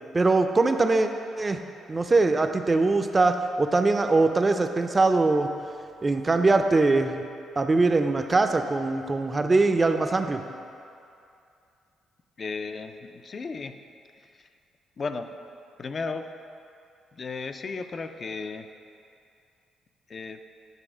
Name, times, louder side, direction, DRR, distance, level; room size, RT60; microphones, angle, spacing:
voice 1, 0.1-1.1 1.4-1.6 1.9-5.5 6.0-7.2 7.6-10.4, right 3 dB, 25° right, 7 dB, 0.4 m, -22 dB
voice 2, 12.4-13.8 14.4-14.5 15.0-15.4 15.8-16.3 17.1-18.7 20.1-20.4, left 4 dB, 40° left, 8 dB, 0.4 m, -34 dB
9.1 x 3.3 x 4.9 m, 2.5 s
cardioid pair, 90°, 0 cm